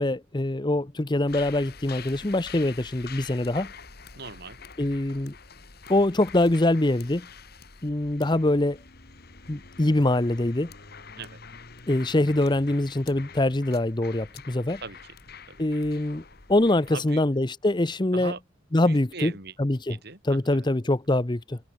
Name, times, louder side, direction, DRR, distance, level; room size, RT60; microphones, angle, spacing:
voice 1, 0.0-3.7 4.8-5.3 5.9-7.3 7.8-8.8 9.5-10.7 11.9-14.8 15.6-16.2 16.5-18.3 18.7-19.3 19.6-20.0 20.3-21.6, left 1 dB, 20° left, 0.7 m, -24 dB
sound 1, 1.3-16.9, left 5 dB, 50° left, 2.3 m, -46 dB
voice 2, 4.1-4.6 11.2-11.4 14.8-15.2 15.5-15.7 16.9-17.2 18.1-18.4 18.8-19.5 19.9-20.7, right 4 dB, 50° right, 5.7 m, -40 dB
head